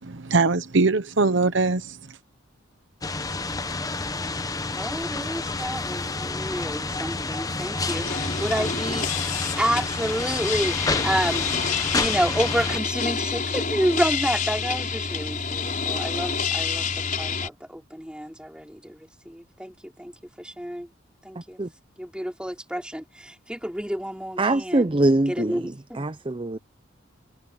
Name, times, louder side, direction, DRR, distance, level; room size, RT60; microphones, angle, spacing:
voice 1, 0.0-2.2, right 3 dB, 65° right, 1.0 m, -22 dB
sound 1, 3.0-12.8, left 3 dB, 20° left, 0.8 m, -29 dB
voice 2, 4.7-20.1 20.4-20.9 21.2-21.6 22.0-24.9 25.3-26.1, equal, 5° right, 3.5 m, -29 dB
sound 2, 7.8-17.5, left 5 dB, 40° left, 5.3 m, -28 dB
voice 3, 24.4-26.6, right 2 dB, 25° right, 0.6 m, -23 dB
head